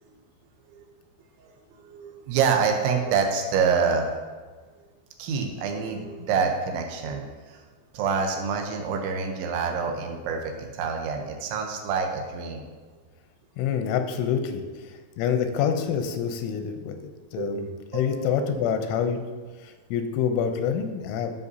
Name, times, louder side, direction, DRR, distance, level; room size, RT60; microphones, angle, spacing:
voice 1, 1.8-4.2 5.2-7.6 7.9-12.7 17.4-17.7 17.9-18.6, right 5 dB, 85° right, 2 dB, 3.2 m, -27 dB
voice 2, 13.6-14.6 15.2-17.7 17.9-19.2 19.6-21.4, left 7 dB, 90° left, 7 dB, 3.0 m, -26 dB
15.0 x 5.4 x 2.7 m, 1.4 s
omnidirectional pair, 5.4 m